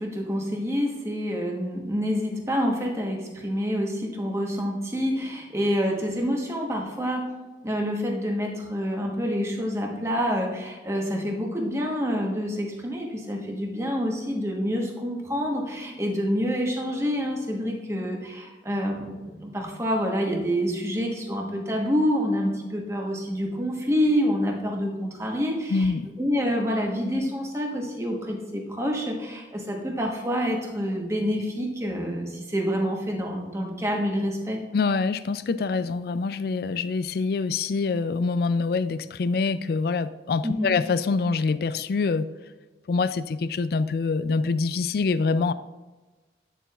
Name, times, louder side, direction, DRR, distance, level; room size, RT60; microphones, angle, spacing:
voice 1, 0.0-7.3 7.6-25.9 26.2-34.6 40.4-40.7, equal, 15° right, 0 dB, 1.2 m, -27 dB
voice 2, 25.7-26.1 34.7-42.3 42.9-45.5, left 4 dB, 55° left, 14 dB, 0.3 m, -25 dB
9.5 x 7.0 x 2.4 m, 1.2 s
head